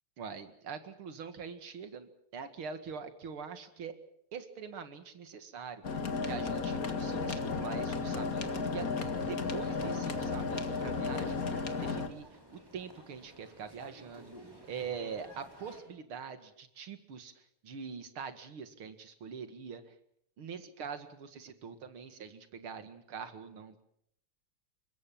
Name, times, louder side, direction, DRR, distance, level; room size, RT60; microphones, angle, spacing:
voice 1, 0.2-4.0 4.3-8.9 9.3-14.3 14.6-19.9 20.4-23.8, right 6 dB, 70° right, 9 dB, 2.8 m, -44 dB
sound 1, 5.8-12.1, left 4 dB, 40° left, 2.2 m, -34 dB
sound 2, 8.3-15.8, equal, 10° right, 4.8 m, -55 dB
23.5 x 22.0 x 7.6 m, 0.71 s
omnidirectional pair, 2.4 m